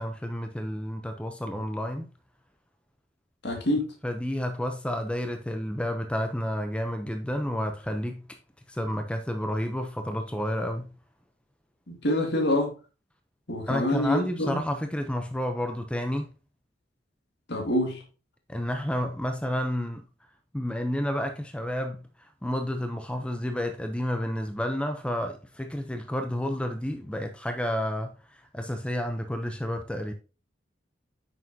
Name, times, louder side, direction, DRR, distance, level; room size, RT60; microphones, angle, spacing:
voice 1, 0.0-2.1 4.0-8.2 8.7-10.9 13.7-16.3 18.5-20.0 20.5-30.1, equal, 5° left, 0.6 m, -30 dB
voice 2, 3.4-3.9 11.9-12.7 13.5-14.6 17.5-18.0, left 1 dB, 60° left, 2.1 m, -26 dB
8.8 x 6.3 x 2.7 m
head